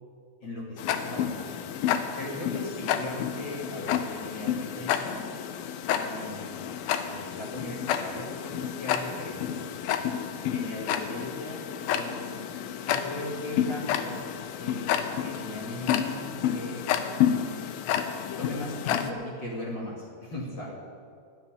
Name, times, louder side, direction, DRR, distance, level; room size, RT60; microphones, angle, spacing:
voice 1, 0.4-1.6 2.2-5.2 5.9-6.7 7.0-10.0 10.5-11.6 11.9-12.3 12.8-14.2 14.6-16.2 16.5-16.8 18.4-20.7, left 1 dB, 35° left, -4 dB, 2.2 m, -38 dB
Tick-tock, 0.8-19.1, left 9 dB, 80° left, 2.3 m, -30 dB
13.5 x 7.4 x 9.9 m, 2.3 s
omnidirectional pair, 4.8 m